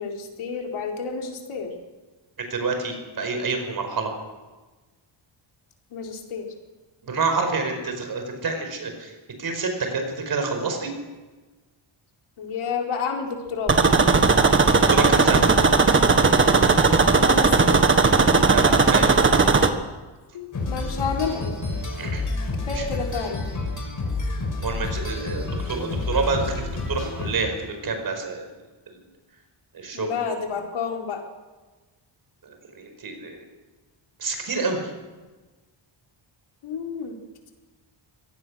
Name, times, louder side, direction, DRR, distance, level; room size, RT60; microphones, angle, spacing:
voice 1, 0.0-1.7 5.9-6.5 12.4-13.8 17.3-17.8 20.3-21.6 22.7-23.4 29.9-31.2 36.6-37.2, left 5 dB, 80° left, 1 dB, 4.4 m, -30 dB
voice 2, 2.4-4.1 7.0-10.9 14.9-15.4 18.4-19.1 22.0-22.2 22.6-22.8 24.6-28.5 28.9-29.0 29.7-30.1 32.4-33.4 34.2-34.9, right 4 dB, 45° right, 5 dB, 5.2 m, -28 dB
sound 1, 13.7-19.7, right 4 dB, 25° right, 1.5 m, -17 dB
sound 2, 20.5-27.7, left 2 dB, 40° left, 5.6 m, -29 dB
24.5 x 18.5 x 6.5 m, 1.3 s
wide cardioid pair, 175°, 48 cm